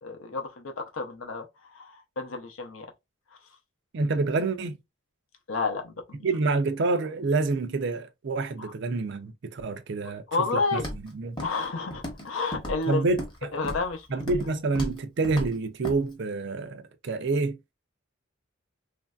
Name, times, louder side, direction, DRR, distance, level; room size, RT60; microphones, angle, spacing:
voice 1, 0.0-2.9 5.5-6.2 8.6-8.7 10.0-10.9 11.4-13.0 13.5-14.2, left 4 dB, 75° left, 0.6 m, -31 dB
voice 2, 3.9-4.8 6.2-10.5 10.7-10.8 11.2-11.4 12.9-13.5 14.1-17.6, right 3 dB, 55° right, 0.4 m, -27 dB
Walk footsteps, 10.8-11.1 11.4-11.7 11.9-12.3 12.5-13.4 13.6-13.9 14.2-14.5 14.7-15.0 15.2-15.5 15.8-16.0, equal, 25° left, 0.8 m, -35 dB
3.1 x 2.5 x 2.3 m
head